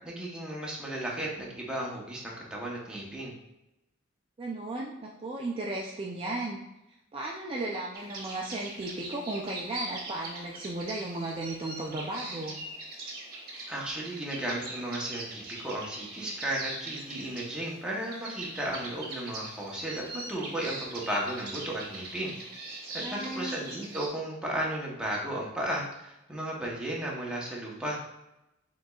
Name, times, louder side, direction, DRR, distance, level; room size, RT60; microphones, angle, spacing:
voice 1, 0.0-3.3 13.7-22.3 22.9-28.0, right 1 dB, 5° right, -4 dB, 0.9 m, -34 dB
voice 2, 4.4-6.6 7.1-12.6 23.0-23.6, right 2 dB, 30° right, -2 dB, 0.4 m, -35 dB
sound 1, 7.9-24.1, right 2 dB, 50° right, 1.0 m, -42 dB
5.1 x 3.8 x 2.3 m, 0.92 s
head